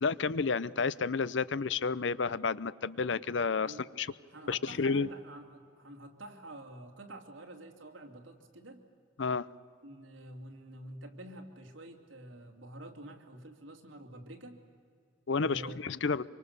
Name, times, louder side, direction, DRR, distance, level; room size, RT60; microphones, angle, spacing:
voice 1, 0.0-4.1 4.5-5.1 9.2-9.5 15.3-16.2, left 4 dB, 65° left, 18 dB, 0.6 m, -31 dB
voice 2, 4.3-8.8 9.8-14.6 15.3-15.8, right 1 dB, 85° right, 3 dB, 2.9 m, -48 dB
25.5 x 24.5 x 6.8 m, 2.3 s
head